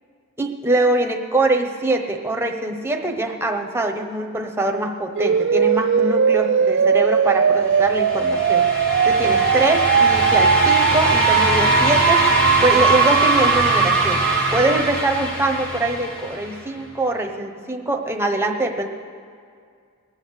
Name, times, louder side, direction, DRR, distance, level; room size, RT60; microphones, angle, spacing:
voice 1, 0.4-8.7 9.0-12.2 12.6-14.2 14.5-18.9, right 2 dB, 10° right, 3 dB, 0.9 m, -23 dB
sound 1, 5.2-15.0, right 7 dB, 55° right, 0.4 m, -18 dB
sound 2, 7.7-16.6, left 1 dB, 45° left, 3.2 m, -23 dB
21.5 x 8.5 x 6.6 m, 2.2 s
head